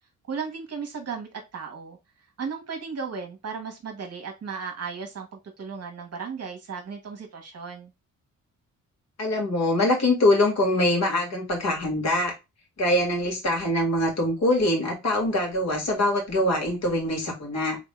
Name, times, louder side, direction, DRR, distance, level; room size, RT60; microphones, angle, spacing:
voice 1, 0.3-2.0 2.4-7.9, right 5 dB, 45° right, 1.1 m, -35 dB
voice 2, 9.2-12.3 12.8-17.8, left 1 dB, 50° left, 2.2 m, -23 dB
3.8 x 3.5 x 2.3 m
cardioid pair, 115°, 33 cm